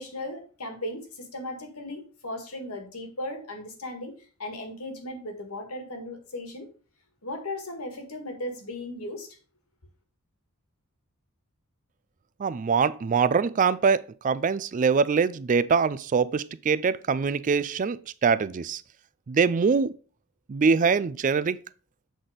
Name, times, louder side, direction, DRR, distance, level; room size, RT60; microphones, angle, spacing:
voice 1, 0.0-4.1 4.4-6.7 7.2-9.3, left 1 dB, 75° left, 1.9 m, -36 dB
voice 2, 12.4-18.0 18.2-18.8 19.3-19.9 20.5-21.6, right 5 dB, 35° right, 0.3 m, -23 dB
7.8 x 4.1 x 5.0 m
head